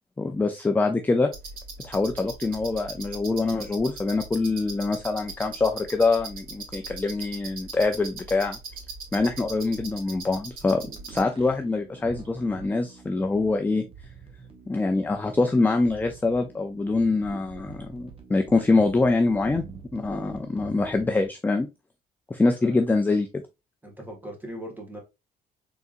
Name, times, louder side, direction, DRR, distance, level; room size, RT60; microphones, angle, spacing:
voice 1, 0.2-1.3 1.8-8.6 9.1-10.8 11.1-13.8 14.7-19.6 19.9-21.7 22.3-23.3, left 3 dB, 10° left, 0.4 m, -24 dB
sound 1, 1.3-11.2, right 4 dB, 60° right, 2.4 m, -40 dB
sound 2, 10.6-21.3, right 5 dB, 35° right, 1.0 m, -45 dB
voice 2, 23.8-25.0, equal, 10° right, 1.7 m, -39 dB
3.9 x 3.5 x 2.5 m
cardioid pair, 110°, 17 cm